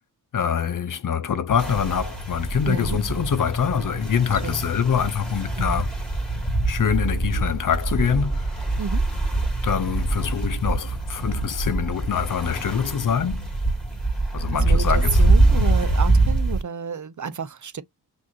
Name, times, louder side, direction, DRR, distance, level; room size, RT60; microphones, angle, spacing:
voice 1, 0.3-5.9 6.7-8.6 9.6-13.5 14.3-15.2, left 7 dB, 55° left, 0.7 m, -24 dB
sound 1, 1.6-16.6, right 2 dB, ahead, 2.6 m, -24 dB
voice 2, 2.7-3.0 4.3-4.6 5.6-5.8 8.8-9.0 14.5-17.8, right 6 dB, 50° right, 0.8 m, -31 dB
6.1 x 2.7 x 2.8 m
cardioid pair, 80°, 39 cm